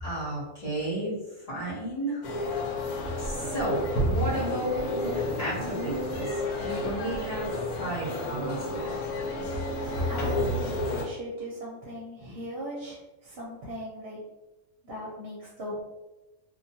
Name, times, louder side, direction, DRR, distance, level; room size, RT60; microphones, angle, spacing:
voice 1, 0.0-2.3 3.2-9.0, right 1 dB, 35° left, -9 dB, 0.8 m, -33 dB
sound 1, 2.2-11.1, left 1 dB, 85° left, 1.1 m, -31 dB
voice 2, 10.1-14.2 14.8-15.8, equal, 55° right, -5 dB, 0.8 m, -39 dB
2.4 x 2.3 x 2.7 m, 1.1 s
omnidirectional pair, 1.5 m